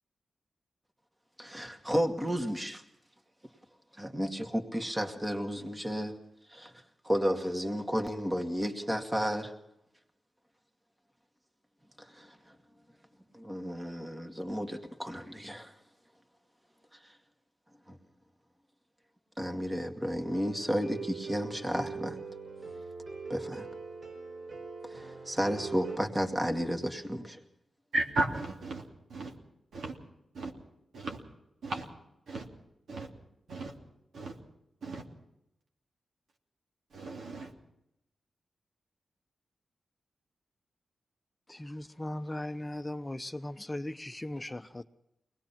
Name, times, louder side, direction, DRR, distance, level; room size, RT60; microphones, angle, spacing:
voice 1, 1.4-2.8 3.9-6.2 6.5-9.5 12.0-12.6 13.3-15.7 17.0-17.2 17.9-18.0 19.4-22.2 23.3-23.7 24.8-27.4, equal, 20° right, 2.3 m, -33 dB
sound 1, 20.2-26.0, right 4 dB, 50° right, 4.2 m, -42 dB
voice 2, 27.9-28.8 29.1-29.3 29.7-30.0 30.3-30.5 30.9-31.2 31.6-31.9 32.3-32.5 32.9-33.1 33.5-33.8 34.1-34.4 34.8-35.0 36.9-37.5, right 2 dB, 80° right, 2.9 m, -34 dB
voice 3, 41.5-44.8, left 1 dB, 20° left, 0.8 m, -38 dB
22.5 x 19.5 x 5.9 m
cardioid pair, 60°, 0 cm